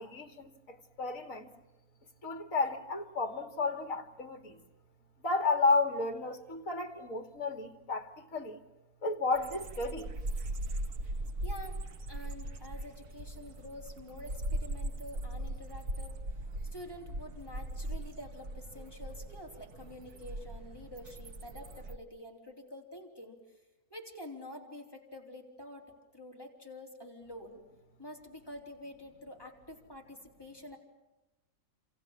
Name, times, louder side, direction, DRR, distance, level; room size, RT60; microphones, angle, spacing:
voice 1, 0.0-1.5 2.2-4.6 5.2-8.6 9.0-10.1, left 3 dB, 60° left, 2.8 m, -32 dB
sound 1, 9.3-22.0, right 1 dB, 85° right, 2.0 m, -39 dB
voice 2, 11.4-11.8 12.1-16.1 16.7-23.4 23.9-25.9 26.1-27.6 28.0-30.8, left 1 dB, 15° left, 4.0 m, -48 dB
28.0 x 28.0 x 7.5 m
omnidirectional pair, 1.6 m